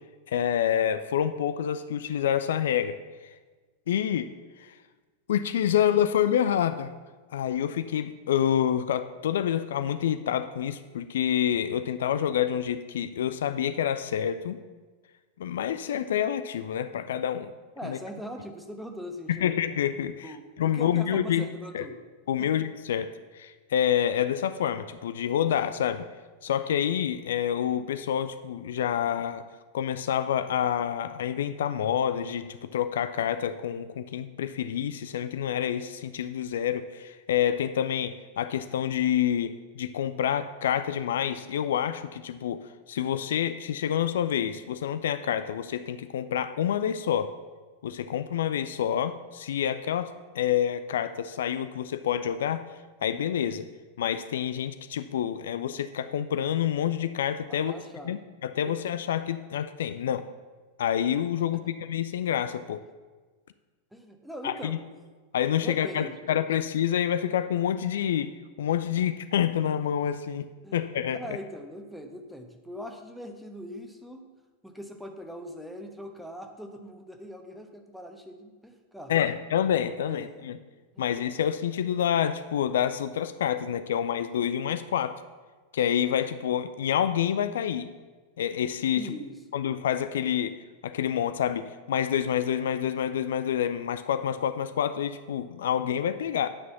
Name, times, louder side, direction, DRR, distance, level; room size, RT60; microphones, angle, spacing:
voice 1, 0.3-3.0 3.9-4.3 4.6-4.7 5.3-6.9 7.3-14.6 15.4-17.5 17.8-18.0 19.3-20.3 20.6-21.4 21.7-21.8 22.3-26.0 26.4-29.4 29.7-42.6 42.9-47.3 47.8-52.6 53.0-53.7 54.0-57.7 58.1-60.2 60.8-61.6 61.9-62.8 64.4-64.8 65.3-71.2 79.1-80.6 81.0-85.2 85.7-87.9 88.4-89.1 89.5-90.6 90.8-96.5, left 9 dB, 60° left, 12 dB, 0.4 m, -27 dB
voice 2, 17.8-19.6 20.2-22.0 22.4-22.5 57.5-58.1 58.7-58.8 61.5-61.6 63.9-64.9 65.6-66.2 70.6-70.8 71.1-74.2 74.6-79.4 80.0-80.5 80.9-81.1 88.9-89.4, equal, ahead, 4 dB, 1.2 m, -41 dB
9.8 x 6.2 x 7.1 m, 1.4 s
figure-of-eight pair, 90°, 0 cm